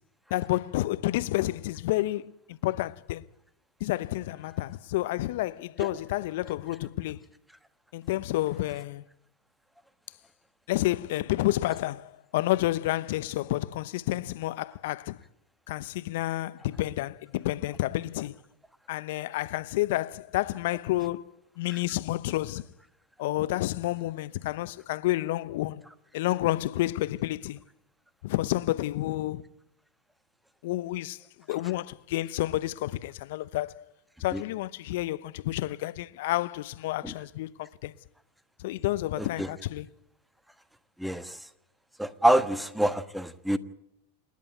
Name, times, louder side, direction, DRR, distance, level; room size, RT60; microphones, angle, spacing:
voice 1, 0.3-3.2 3.8-7.2 7.9-9.0 10.7-15.2 15.7-18.4 18.9-21.3 21.6-22.6 23.2-25.8 26.1-27.6 28.2-29.4 30.6-31.2 31.5-33.9 34.2-37.9 38.6-39.9, left 16 dB, 65° left, 0.8 m, -30 dB
voice 2, 39.2-39.5 41.0-41.4 42.0-43.6, right 1 dB, 5° right, 1.3 m, -26 dB
28.0 x 10.5 x 9.2 m
hypercardioid pair, 95°, 0 cm